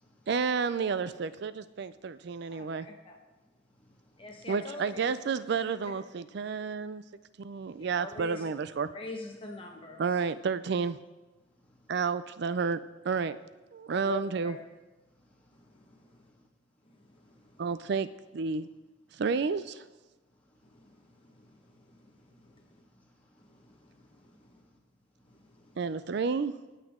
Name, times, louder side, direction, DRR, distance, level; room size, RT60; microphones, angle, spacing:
voice 1, 0.3-2.9 4.5-7.0 7.4-8.9 10.0-11.0 11.9-12.8 13.0-13.4 13.7-14.6 17.6-18.1 18.3-18.7 19.1-19.8 25.8-26.5, right 5 dB, 60° right, 14 dB, 0.4 m, -30 dB
voice 2, 2.5-3.2 4.2-5.1 5.6-5.7 7.8-8.4 8.9-10.0 13.9-14.6 17.3-17.4 22.0-22.1 24.3-24.4, left 2 dB, 25° left, 1 dB, 1.3 m, -43 dB
voice 3, 4.2-4.6 7.6-7.7 14.0-14.2 15.6-16.3 17.3-17.4 17.7-17.8 19.3-19.4 21.3-21.6 22.2-22.9 23.3-24.8 25.3-25.4 25.9-26.2, left 1 dB, 10° left, -4 dB, 2.8 m, -65 dB
24.5 x 8.2 x 3.7 m, 1.2 s
head